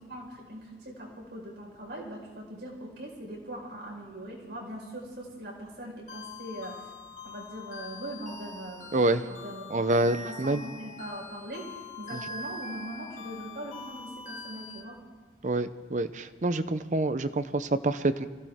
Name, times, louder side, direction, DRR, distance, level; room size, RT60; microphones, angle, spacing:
voice 1, 0.0-6.8 7.2-15.0, right 1 dB, 75° right, -2 dB, 4.8 m, -41 dB
sound 1, 6.1-14.8, left 3 dB, 45° left, 1.9 m, -43 dB
voice 2, 9.7-10.6 15.4-18.3, right 2 dB, 45° right, 12 dB, 0.6 m, -27 dB
25.0 x 16.0 x 3.6 m, 1.3 s
head